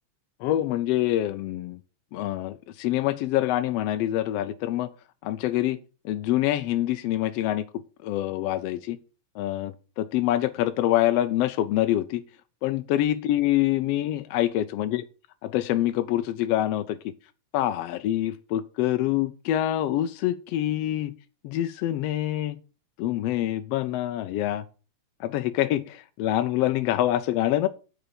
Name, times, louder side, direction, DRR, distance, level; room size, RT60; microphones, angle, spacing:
voice 1, 0.4-1.8 2.1-4.9 5.2-5.8 6.0-7.6 8.0-9.0 9.3-12.2 12.6-15.0 15.4-17.0 17.5-21.1 21.4-22.6 23.0-24.6 25.2-27.7, left 13 dB, 80° left, 1.5 m, -25 dB
8.9 x 5.8 x 6.8 m
omnidirectional pair, 3.3 m